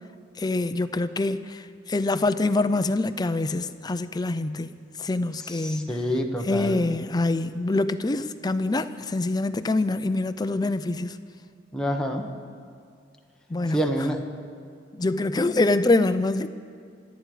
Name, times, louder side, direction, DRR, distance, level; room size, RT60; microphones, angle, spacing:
voice 1, 0.4-6.0 6.4-11.2 13.5-13.8 14.9-16.5, left 2 dB, 20° left, 12 dB, 0.5 m, -25 dB
voice 2, 5.4-6.8 11.7-12.2 13.7-14.2, equal, 5° left, 1 dB, 1.1 m, -27 dB
27.0 x 9.1 x 4.9 m, 2.2 s
head